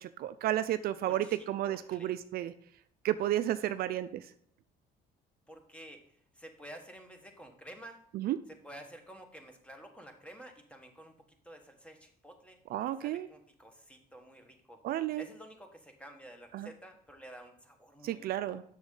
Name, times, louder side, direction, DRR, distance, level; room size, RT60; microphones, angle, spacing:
voice 1, 0.0-2.5 3.0-4.2 8.1-8.4 12.7-13.3 14.8-15.3 16.5-16.7 18.0-18.6, right 13 dB, 65° right, 12 dB, 0.4 m, -32 dB
voice 2, 1.1-1.4 1.7-2.1 3.8-3.9 5.5-8.0 8.5-12.6 13.0-14.8 15.2-18.6, right 1 dB, 5° left, 5 dB, 1.2 m, -51 dB
7.0 x 6.3 x 3.8 m, 0.65 s
cardioid pair, 110°, 17 cm